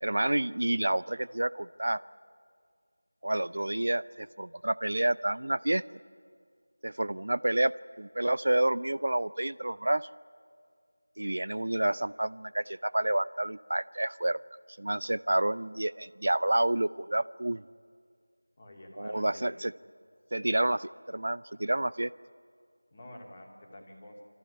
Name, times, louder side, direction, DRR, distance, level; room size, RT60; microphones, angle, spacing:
voice 1, 0.0-2.0 3.2-5.8 6.8-10.1 11.2-14.4 14.8-17.6 19.0-19.7 20.3-22.1, right 1 dB, 55° right, 19 dB, 0.5 m, -29 dB
voice 2, 18.6-19.6 22.9-24.2, left 1 dB, 20° left, -1 dB, 2.7 m, -49 dB
26.0 x 14.5 x 9.8 m, 2.1 s
figure-of-eight pair, 170°, 0 cm